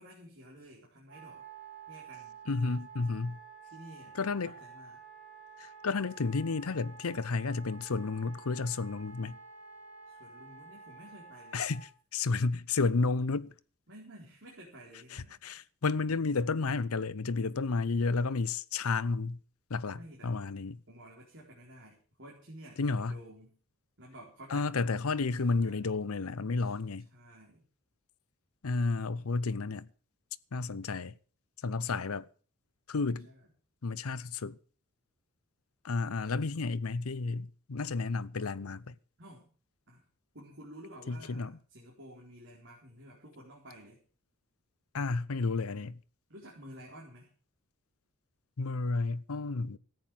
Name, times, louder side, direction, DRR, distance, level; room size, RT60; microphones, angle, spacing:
voice 1, 0.0-1.5 1.9-2.4 3.7-5.0 10.1-11.6 13.9-15.4 20.0-20.3 20.9-23.5 24.0-24.7 25.2-25.9 26.6-26.7 27.1-27.7 33.0-33.5 39.2-39.5 39.9-40.0 40.3-44.0 46.3-47.3, right 1 dB, 55° right, 4.4 m, -52 dB
Wind instrument woodwind instrument, 1.1-11.9, right 5 dB, 35° right, 5.6 m, -50 dB
voice 2, 2.5-3.4 4.1-4.5 5.6-9.4 11.5-13.5 15.1-19.4 19.7-20.8 22.8-23.2 24.5-27.1 28.6-29.9 30.5-31.2 31.6-32.3 32.9-33.3 33.8-34.6 35.8-38.9 41.1-41.6 44.9-46.0 48.6-49.8, left 4 dB, 85° left, 0.7 m, -32 dB
14.0 x 9.4 x 7.3 m
head